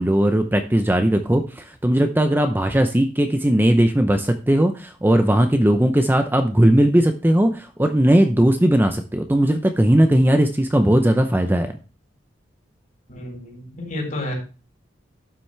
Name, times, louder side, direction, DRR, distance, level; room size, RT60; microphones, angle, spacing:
voice 1, 0.0-11.7, right 1 dB, 10° right, 6 dB, 0.6 m, -18 dB
voice 2, 13.1-14.3, left 1 dB, 45° left, 0 dB, 4.4 m, -30 dB
11.5 x 6.0 x 3.3 m, 0.32 s
head